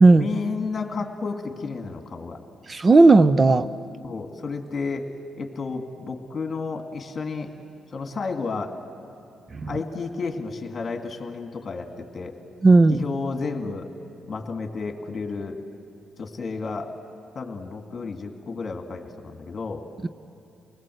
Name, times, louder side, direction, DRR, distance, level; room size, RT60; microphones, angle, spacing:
voice 1, 0.2-2.4 4.0-5.1 5.4-7.5 7.9-8.7 9.7-12.3 12.9-13.9 14.3-15.6 16.2-16.9 17.3-19.8, left 4 dB, 40° left, 4 dB, 2.2 m, -32 dB
voice 2, 2.7-3.6 9.6-9.7 12.6-13.0, right 3 dB, 30° right, 13 dB, 0.5 m, -14 dB
29.0 x 19.5 x 7.9 m, 2.6 s
cardioid pair, 90°, 0 cm